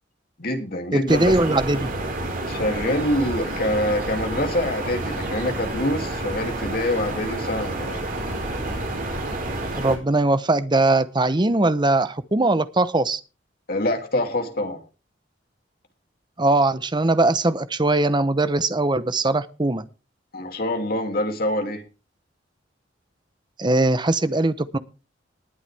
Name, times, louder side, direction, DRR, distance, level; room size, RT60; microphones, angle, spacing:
voice 1, 0.4-1.6 2.5-8.0 13.7-14.8 20.3-21.8, left 1 dB, 50° left, 4 dB, 2.6 m, -25 dB
voice 2, 0.9-1.9 9.7-13.2 16.4-19.8 23.6-24.8, right 2 dB, 25° right, 14 dB, 0.8 m, -20 dB
sound 1, 1.1-10.0, right 2 dB, 50° right, 4.6 m, -29 dB
20.0 x 8.0 x 3.4 m, 0.32 s
head